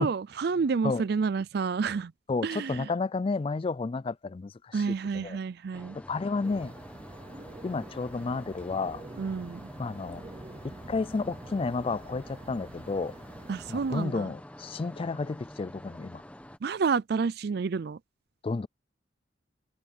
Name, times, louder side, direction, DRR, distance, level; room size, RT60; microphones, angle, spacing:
voice 1, 0.0-2.1 2.4-2.9 4.7-6.0 9.2-9.7 13.5-14.3 16.6-18.0, right 5 dB, 55° right, 0.4 m, -29 dB
voice 2, 2.3-5.4 5.9-6.7 7.6-9.0 9.8-10.2 10.6-13.1 13.7-16.2 18.4-18.7, left 4 dB, 30° left, 0.3 m, -31 dB
sound 1, 5.7-16.6, equal, 5° left, 1.5 m, -48 dB
sound 2, 6.4-14.1, right 2 dB, 30° right, 0.7 m, -47 dB
head